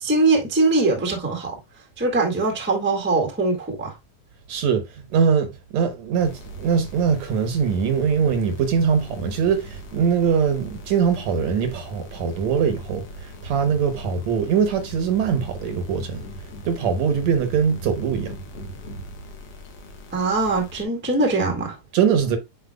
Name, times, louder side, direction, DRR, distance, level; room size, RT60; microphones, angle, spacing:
voice 1, 0.0-1.6 2.0-3.9 20.1-21.8, right 3 dB, 5° right, 1.0 m, -22 dB
voice 2, 4.5-16.3 16.6-18.4 21.9-22.4, right 6 dB, 65° right, 2.1 m, -22 dB
sound 1, 6.2-20.9, right 1 dB, 55° left, 2.3 m, -39 dB
9.3 x 4.6 x 2.3 m
omnidirectional pair, 3.6 m